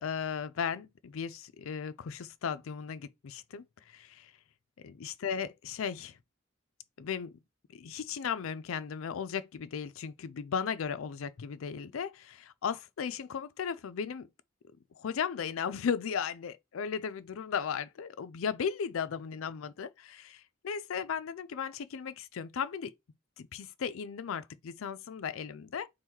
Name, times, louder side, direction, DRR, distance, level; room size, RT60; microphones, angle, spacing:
voice 1, 0.0-4.3 4.8-6.1 7.0-7.3 7.7-14.3 15.0-22.9 23.4-25.9, left 7 dB, 85° left, 0.4 m, -36 dB
3.6 x 3.0 x 4.3 m
head